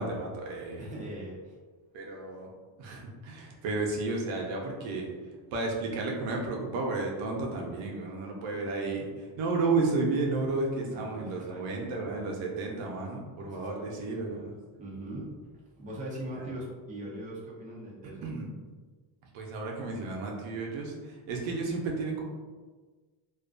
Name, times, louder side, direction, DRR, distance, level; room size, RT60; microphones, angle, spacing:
voice 1, 0.0-0.8 1.9-2.5 2.8-5.1 5.5-9.1 9.4-14.5 18.2-18.5 19.3-22.2, right 3 dB, 75° right, 0 dB, 0.6 m, -32 dB
voice 2, 0.8-1.5 8.5-9.1 10.9-12.3 13.6-14.5 14.8-18.3, right 1 dB, 15° right, -5 dB, 0.6 m, -42 dB
2.5 x 2.1 x 2.4 m, 1.4 s
cardioid pair, 130°, 47 cm